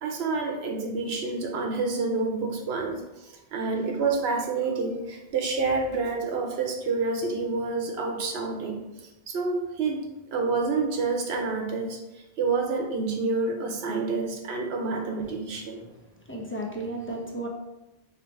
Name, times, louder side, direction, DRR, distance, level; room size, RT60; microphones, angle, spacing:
voice 1, 0.0-8.8 9.3-10.0 10.3-15.8, right 4 dB, 90° right, 2 dB, 0.9 m, -28 dB
voice 2, 16.2-17.5, right 1 dB, 15° left, -2 dB, 0.5 m, -34 dB
4.6 x 2.9 x 3.1 m, 0.98 s
omnidirectional pair, 1.0 m